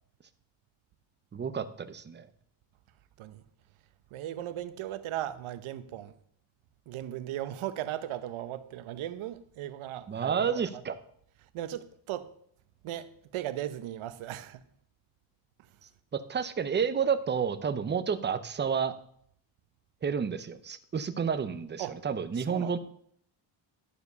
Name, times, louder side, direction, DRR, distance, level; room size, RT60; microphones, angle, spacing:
voice 1, 1.3-2.3 10.1-11.0 16.1-18.9 20.0-22.8, right 6 dB, 25° right, 0.6 m, -30 dB
voice 2, 4.1-6.1 6.9-10.8 11.5-12.3 12.8-14.6 21.8-22.0 22.3-22.7, right 12 dB, 80° right, 0.9 m, -37 dB
11.5 x 4.8 x 6.6 m
cardioid pair, 140°, 48 cm